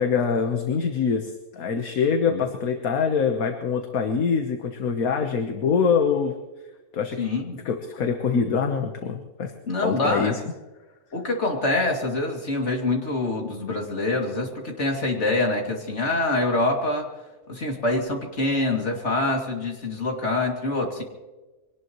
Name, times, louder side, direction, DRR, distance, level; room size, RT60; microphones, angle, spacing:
voice 1, 0.0-6.3 6.9-7.2 7.6-9.5 9.8-10.4, left 6 dB, 65° left, 5 dB, 1.6 m, -24 dB
voice 2, 7.2-7.6 9.7-10.3 11.1-17.1 17.5-21.0, left 2 dB, 45° left, 1 dB, 3.0 m, -25 dB
24.0 x 18.5 x 3.1 m, 1.2 s
omnidirectional pair, 1.7 m